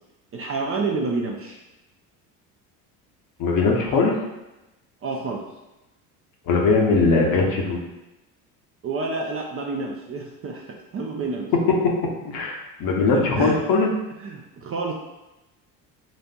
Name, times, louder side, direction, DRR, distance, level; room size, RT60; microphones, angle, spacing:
voice 1, 0.3-1.6 5.0-5.4 8.8-11.5 13.4-13.6 14.2-14.9, right 3 dB, 30° right, 0 dB, 0.5 m, -29 dB
voice 2, 3.4-4.1 6.5-7.8 11.8-11.9 12.2-13.9, left 3 dB, 45° left, 0 dB, 0.8 m, -20 dB
4.1 x 2.5 x 2.2 m, 0.99 s
hypercardioid pair, 65°, 47 cm